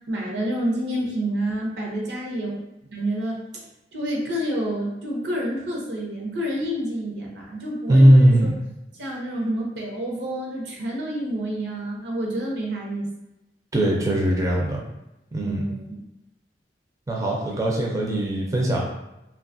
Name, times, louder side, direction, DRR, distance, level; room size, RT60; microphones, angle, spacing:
voice 1, 0.1-2.6 2.9-3.4 3.9-8.5 9.0-13.1 15.4-16.0, right 1 dB, 85° right, -2 dB, 0.7 m, -28 dB
voice 2, 7.9-8.6 13.7-14.8 15.3-15.7 17.1-18.9, right 1 dB, 20° right, -3 dB, 0.4 m, -19 dB
3.0 x 2.3 x 2.5 m, 0.91 s
head